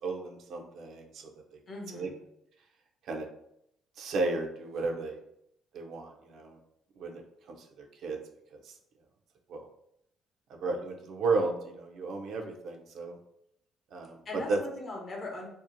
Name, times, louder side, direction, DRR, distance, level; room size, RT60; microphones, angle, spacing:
voice 1, 0.0-1.3 1.9-2.1 3.1-3.3 4.0-5.2 5.7-6.6 7.0-7.2 7.8-8.2 8.5-8.7 9.5-9.6 10.5-13.2 13.9-14.2 14.5-14.6, right 3 dB, 70° right, 2 dB, 0.4 m, -33 dB
voice 2, 1.7-2.2 14.2-15.5, left 2 dB, 45° left, 0 dB, 0.7 m, -40 dB
2.7 x 2.0 x 2.5 m, 0.77 s
cardioid pair, 85°, 0 cm